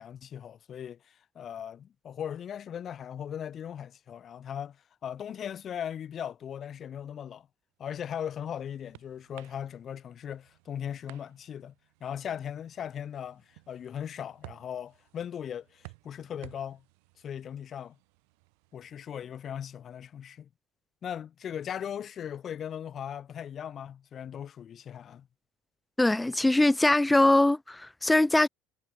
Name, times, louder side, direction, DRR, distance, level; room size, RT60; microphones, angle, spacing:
voice 1, 0.0-7.5 7.8-11.7 12.0-16.8 17.2-18.0 18.7-20.5 21.0-25.3, left 9 dB, 40° left, 2.8 m, -38 dB
sound 1, 8.2-19.0, right 34 dB, 80° right, 4.0 m, -56 dB
voice 2, 26.0-28.5, left 2 dB, 10° left, 0.9 m, -22 dB
supercardioid pair, 100°, 0 cm